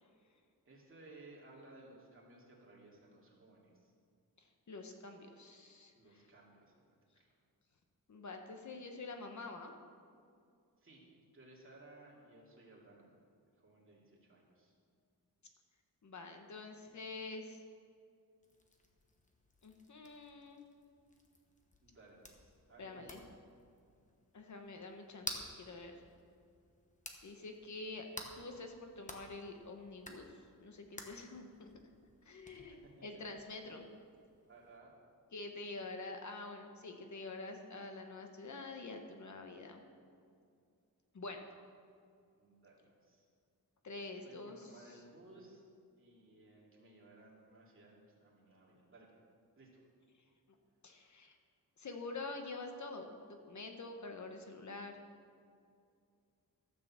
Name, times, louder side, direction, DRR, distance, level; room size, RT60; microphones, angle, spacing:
voice 1, 0.7-3.9 5.9-7.3 10.8-11.0 11.3-13.1 13.6-14.7 21.8-23.4 32.7-32.9 33.6-33.7 34.5-34.9 42.4-43.2 44.0-45.6 46.0-49.2 49.6-49.8, right 2 dB, 35° right, -4 dB, 2.6 m, -59 dB
voice 2, 4.7-6.2 8.1-9.7 16.0-17.6 19.6-20.7 22.8-23.2 24.3-26.0 27.2-28.1 28.4-31.7 32.2-33.9 35.3-39.9 41.1-41.4 43.8-44.7 50.8-51.3 51.8-55.0, left 3 dB, 50° left, 4 dB, 1.0 m, -47 dB
sound 1, 18.4-34.8, left 2 dB, 20° left, 1.1 m, -53 dB
13.0 x 6.7 x 7.3 m, 2.3 s
wide cardioid pair, 165°, 36 cm